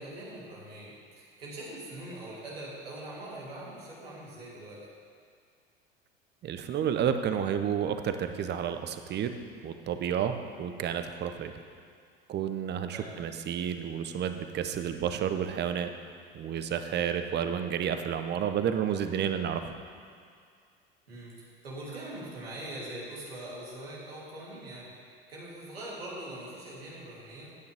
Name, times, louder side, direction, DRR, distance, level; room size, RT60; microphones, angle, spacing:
voice 1, 0.0-4.8 12.9-13.1 21.1-24.9 25.3-27.6, right 1 dB, 90° right, -7 dB, 3.2 m, -42 dB
voice 2, 6.4-9.3 9.6-11.5 12.3-15.9 16.3-19.7, right 8 dB, 35° right, 8 dB, 0.8 m, -31 dB
14.5 x 9.4 x 3.5 m, 2.2 s
hypercardioid pair, 75°, 29 cm